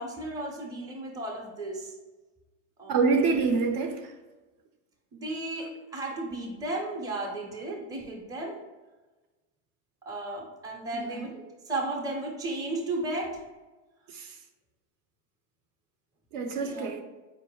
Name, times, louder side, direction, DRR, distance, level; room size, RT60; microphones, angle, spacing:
voice 1, 0.0-1.9 2.8-3.0 5.1-8.6 10.1-13.3 16.6-16.9, right 2 dB, 10° right, 0.5 m, -34 dB
voice 2, 2.9-4.1 10.9-11.3 14.1-14.4 16.3-17.0, right 4 dB, 50° right, 0.6 m, -27 dB
4.6 x 2.6 x 4.3 m
supercardioid pair, 140°, 40 cm